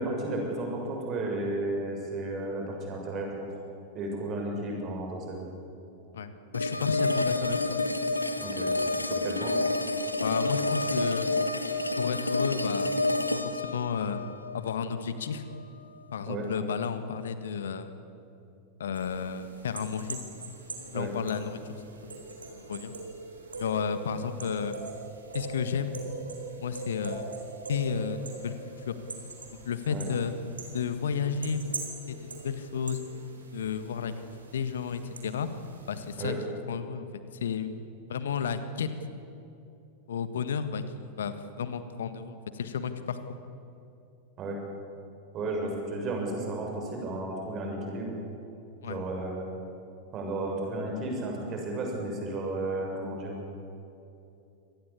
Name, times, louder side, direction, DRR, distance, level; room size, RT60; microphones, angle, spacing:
voice 1, 0.0-3.3 3.9-5.5 8.4-8.7 9.1-9.5 16.3-16.5 20.9-21.1 29.9-30.1 36.2-36.4 44.4-44.6 45.3-48.1 48.8-49.5 50.1-53.4, right 2 dB, 30° right, 1 dB, 7.0 m, -33 dB
voice 2, 6.1-7.8 10.2-11.3 12.0-12.9 13.3-14.2 14.5-15.4 16.1-17.9 18.8-20.2 20.9-21.6 22.0-22.2 22.5-22.9 23.5-24.8 25.3-26.0 26.6-27.3 27.7-28.6 28.9-29.0 29.6-30.4 30.7-31.6 32.1-33.0 33.5-34.1 34.5-35.5 35.9-36.4 36.7-37.7 38.1-38.9 40.1-40.8 41.2-43.2 48.8-49.0, left 6 dB, 65° left, 11 dB, 1.5 m, -32 dB
sound 1, 6.5-15.6, left 2 dB, 85° left, 1.3 m, -29 dB
sound 2, 19.0-36.3, right 3 dB, 75° right, 4.1 m, -42 dB
25.5 x 19.0 x 8.5 m, 2.8 s
figure-of-eight pair, 90°, 0 cm